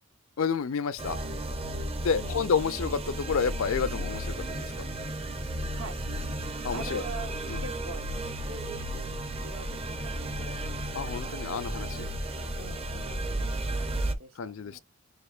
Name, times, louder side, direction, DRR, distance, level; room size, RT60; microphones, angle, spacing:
voice 1, 0.4-1.2 2.0-4.9 6.6-7.0 7.5-7.6 10.9-12.1 12.3-12.7 14.4-14.8, left 6 dB, 70° left, 0.5 m, -30 dB
sound 1, 1.0-14.1, right 1 dB, 25° right, 0.5 m, -34 dB
voice 2, 6.7-10.6 11.2-11.5 12.6-14.8, right 3 dB, 75° right, 1.0 m, -44 dB
6.5 x 2.4 x 2.4 m
head